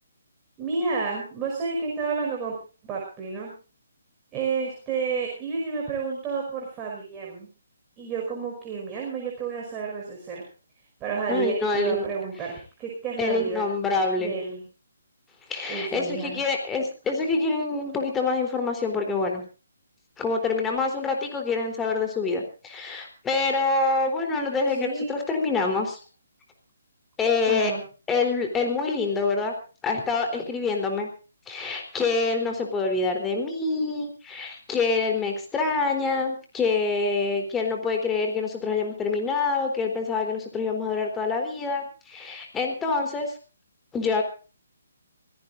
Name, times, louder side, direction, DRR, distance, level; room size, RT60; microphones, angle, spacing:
voice 1, 0.6-2.6 2.8-3.5 4.3-7.5 8.0-10.4 11.0-13.7 14.2-14.7 15.7-16.4 24.8-25.1 27.5-27.8, right 5 dB, 20° right, -2 dB, 5.6 m, -30 dB
voice 2, 11.3-12.0 13.2-14.3 15.5-19.4 20.2-26.0 27.2-27.7 28.1-29.5 29.8-31.1 31.5-43.3 43.9-44.2, left 4 dB, 10° left, 3 dB, 3.7 m, -26 dB
25.0 x 17.5 x 2.6 m, 0.35 s
figure-of-eight pair, 145°, 0 cm